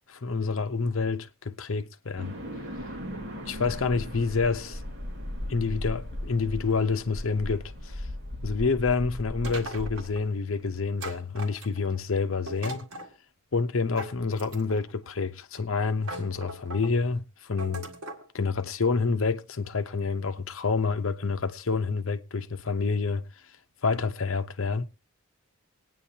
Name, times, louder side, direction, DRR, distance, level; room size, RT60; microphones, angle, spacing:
voice 1, 0.1-2.4 3.5-4.8 5.5-8.1 8.4-12.9 13.5-17.9 18.3-23.2 23.8-24.8, left 4 dB, 65° left, 0.8 m, -28 dB
sound 1, 2.2-10.7, equal, 55° right, 2.3 m, -37 dB
sound 2, 9.4-10.2 11.0-12.0 12.5-13.1 14.0-14.9 15.6-15.7 16.0-16.9 17.6-18.3, right 1 dB, 85° right, 1.9 m, -39 dB
21.0 x 9.4 x 2.8 m
head